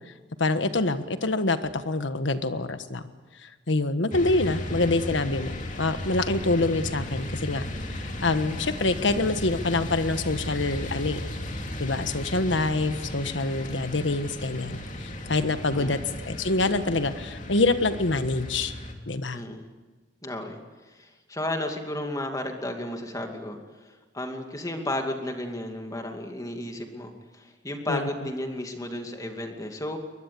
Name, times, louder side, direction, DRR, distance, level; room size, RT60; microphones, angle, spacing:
voice 1, 0.4-3.1 3.4-5.5 5.8-11.2 11.8-16.0 16.2-18.7 19.1-19.4 27.9-28.1, left 2 dB, 85° left, 10 dB, 1.4 m, -26 dB
sound 1, 4.1-18.9, left 1 dB, 45° left, 2.6 m, -35 dB
voice 2, 19.3-19.7 20.2-20.6 20.9-23.6 24.1-30.0, left 1 dB, 20° left, 4 dB, 2.5 m, -33 dB
23.0 x 21.5 x 8.5 m, 1.3 s
head